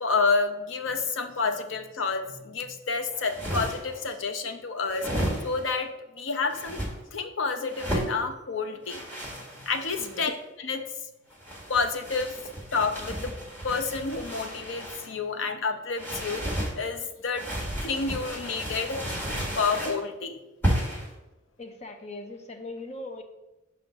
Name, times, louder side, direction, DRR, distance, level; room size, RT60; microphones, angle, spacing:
voice 1, 0.0-5.1 5.4-6.8 7.1-9.1 9.6-10.9 11.7-12.4 12.7-13.3 13.6-19.0 19.6-20.4, left 4 dB, 85° left, 7 dB, 0.7 m, -29 dB
sound 1, 3.1-4.0 4.9-5.8 6.5-6.9 7.7-8.1 8.9-10.3 11.3-15.1 16.0-16.7 17.3-20.0 20.6-21.1, equal, 10° left, 1.4 m, -33 dB
voice 2, 21.6-23.2, left 2 dB, 35° left, 4 dB, 0.8 m, -40 dB
5.8 x 3.8 x 5.2 m, 0.99 s
head